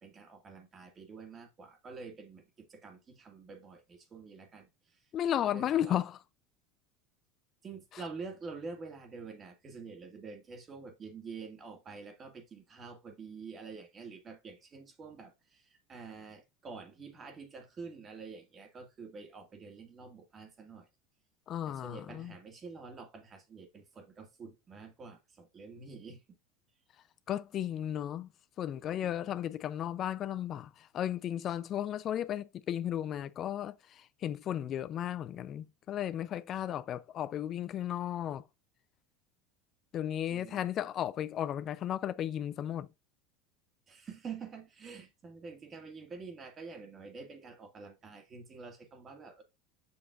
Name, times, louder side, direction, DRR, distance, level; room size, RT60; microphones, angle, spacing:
voice 1, 0.0-4.7 5.5-6.0 7.6-20.9 21.7-26.2 29.0-29.3 40.3-40.6 43.9-49.4, right 4 dB, 35° right, 2.1 m, -47 dB
voice 2, 5.1-6.2 21.5-22.3 27.3-28.3 28.6-38.4 39.9-42.9, left 11 dB, 45° left, 0.5 m, -34 dB
7.1 x 6.0 x 2.5 m
hypercardioid pair, 85°, 0 cm